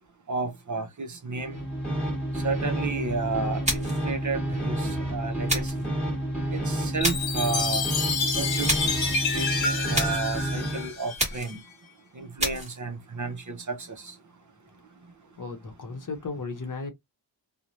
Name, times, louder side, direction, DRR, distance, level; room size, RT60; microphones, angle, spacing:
voice 1, 0.3-1.7 2.3-5.9 6.5-7.9 8.3-8.7 9.3-11.6 12.1-14.2 14.7-15.4, right 4 dB, 40° right, 0.6 m, -33 dB
sound 1, 1.4-10.9, right 1 dB, ahead, 1.2 m, -30 dB
sound 2, 3.6-4.1 5.5-5.9 7.0-7.4 8.7-9.0 9.9-10.3 11.2-11.6 12.4-12.8, right 1 dB, 15° right, 1.1 m, -29 dB
Chime, 7.0-11.5, left 4 dB, 80° left, 0.9 m, -29 dB
voice 2, 15.4-16.9, left 4 dB, 45° left, 0.8 m, -35 dB
2.5 x 2.1 x 3.0 m
wide cardioid pair, 130°, 45 cm